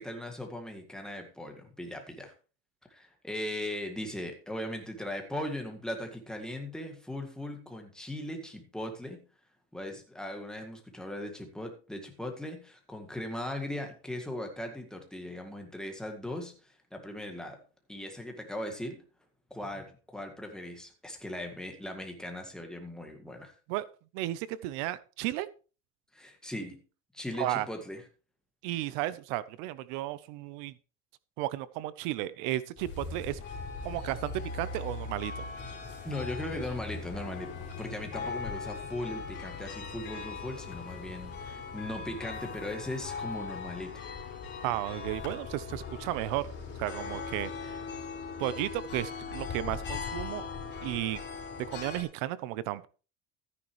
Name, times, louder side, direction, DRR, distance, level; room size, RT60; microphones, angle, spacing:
voice 1, 0.0-2.3 2.9-9.2 9.7-17.6 17.9-19.0 19.5-23.5 26.1-26.8 27.1-28.0 36.0-44.0, left 1 dB, ahead, 3 dB, 1.9 m, -39 dB
voice 2, 24.1-25.5 27.4-27.7 28.6-30.7 31.4-33.4 33.8-35.4 44.6-46.5 46.8-47.8 48.4-50.5 50.8-51.2 51.7-52.9, right 15 dB, 90° right, 17 dB, 0.8 m, -34 dB
sound 1, 32.8-52.0, left 5 dB, 40° left, 3.8 m, -39 dB
13.5 x 9.7 x 3.1 m, 0.35 s
cardioid pair, 160°, 30 cm